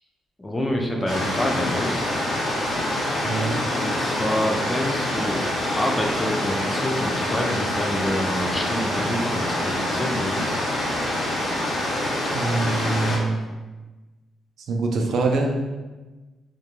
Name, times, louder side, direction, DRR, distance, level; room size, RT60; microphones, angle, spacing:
voice 1, 0.4-2.0 3.8-5.4 5.8-10.4, equal, 15° left, 0 dB, 0.3 m, -27 dB
sound 1, 1.1-13.2, left 1 dB, 80° left, 0.8 m, -26 dB
voice 2, 3.2-3.6 12.3-13.4 14.7-15.5, right 3 dB, 70° right, 1 dB, 0.4 m, -24 dB
2.3 x 2.2 x 2.9 m, 1.2 s
cardioid pair, 125°, 0 cm